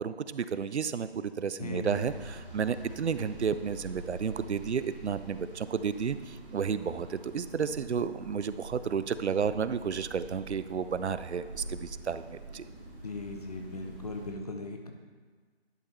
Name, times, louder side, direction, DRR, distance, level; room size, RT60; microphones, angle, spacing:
voice 1, 0.0-12.6, right 6 dB, 85° right, 13 dB, 0.5 m, -32 dB
voice 2, 1.6-2.1 13.0-14.9, left 2 dB, 35° left, 4 dB, 0.7 m, -38 dB
sound 1, 1.8-14.3, right 2 dB, 55° right, 1.9 m, -46 dB
10.5 x 5.2 x 4.1 m, 1.5 s
figure-of-eight pair, 160°, 33 cm